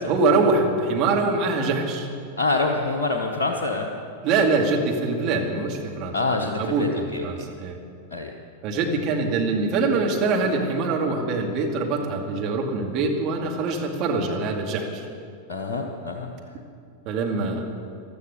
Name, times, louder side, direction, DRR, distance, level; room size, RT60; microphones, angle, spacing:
voice 1, 0.1-2.1 4.2-7.8 8.6-15.1 17.1-17.6, right 3 dB, 40° right, 1 dB, 2.2 m, -24 dB
voice 2, 2.4-3.9 6.1-7.3 8.1-8.3 15.5-16.3, left 3 dB, 65° left, 3 dB, 1.1 m, -26 dB
15.0 x 12.5 x 6.8 m, 2.3 s
figure-of-eight pair, 90°, 0 cm